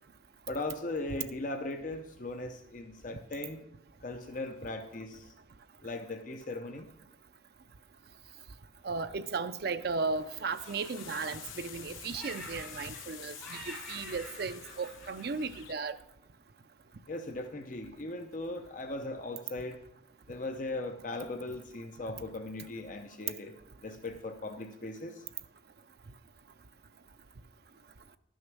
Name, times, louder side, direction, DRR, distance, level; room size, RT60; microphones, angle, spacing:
voice 1, 0.5-3.6 4.0-5.3 5.8-6.9 17.1-19.8 20.3-23.5 23.8-25.3, left 2 dB, 40° left, 0.7 m, -38 dB
voice 2, 8.8-16.0, right 4 dB, 55° right, 0.5 m, -35 dB
Laughter, 8.9-10.2 10.5-11.9 12.1-13.1 13.4-16.0, equal, 10° left, 4.0 m, -48 dB
sound 1, 9.8-15.7, left 9 dB, 90° left, 0.7 m, -48 dB
11.0 x 6.4 x 6.1 m
head